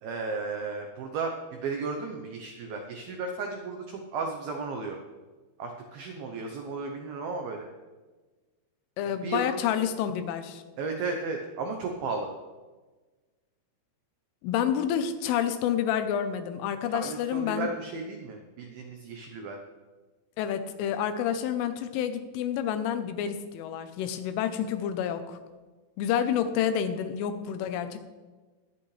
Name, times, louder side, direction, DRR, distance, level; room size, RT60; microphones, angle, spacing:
voice 1, 0.0-5.0 5.6-7.7 9.2-9.6 10.8-12.3 16.9-19.6, right 4 dB, 85° right, 3 dB, 2.1 m, -34 dB
voice 2, 9.0-10.6 14.4-17.7 20.4-25.4 26.0-28.0, left 9 dB, 85° left, 9 dB, 3.4 m, -29 dB
21.0 x 8.7 x 3.3 m, 1.3 s
omnidirectional pair, 5.6 m